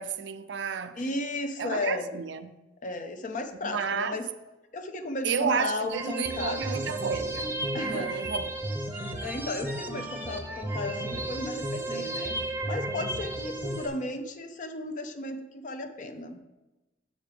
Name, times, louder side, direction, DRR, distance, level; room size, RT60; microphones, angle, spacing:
voice 1, 0.0-1.0 1.6-2.6 3.6-4.2 5.2-8.6, right 6 dB, 80° right, 0.5 m, -32 dB
voice 2, 1.0-2.1 2.8-4.2 4.7-6.7 7.7-8.2 9.2-12.4 12.7-16.4, left 2 dB, 45° left, 0.6 m, -34 dB
sound 1, 5.9-13.9, right 1 dB, 10° right, 0.7 m, -33 dB
6.7 x 5.1 x 4.9 m
head